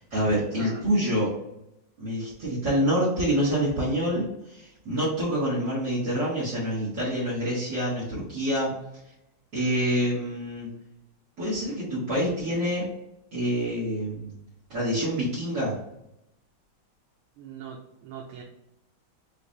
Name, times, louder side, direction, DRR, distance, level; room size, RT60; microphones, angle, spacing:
voice 1, 0.0-1.3 2.0-8.7 9.5-10.7 11.4-12.9 13.3-14.3 14.7-15.8, equal, 60° right, -8 dB, 2.2 m, -26 dB
voice 2, 0.6-0.9 17.4-18.4, right 7 dB, 90° right, 0 dB, 1.5 m, -41 dB
4.9 x 2.5 x 3.9 m, 0.84 s
omnidirectional pair, 2.2 m